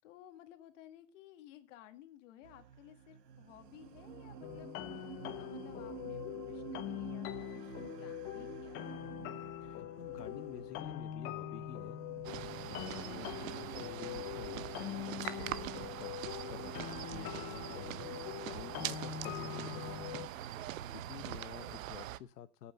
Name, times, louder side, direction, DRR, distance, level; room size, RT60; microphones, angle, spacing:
voice 1, 0.0-9.0 12.3-12.8 18.5-18.9, left 12 dB, 50° left, 9 dB, 1.9 m, -56 dB
sound 1, 2.4-21.1, right 8 dB, 85° right, 1.7 m, -51 dB
sound 2, 4.4-20.3, left 13 dB, 25° left, 0.8 m, -43 dB
voice 2, 9.6-12.0 12.7-22.7, left 11 dB, 80° left, 12 dB, 1.0 m, -50 dB
sound 3, 12.2-22.2, right 13 dB, 55° right, 1.0 m, -43 dB
14.0 x 8.7 x 6.6 m, 0.38 s
hypercardioid pair, 140°, 47 cm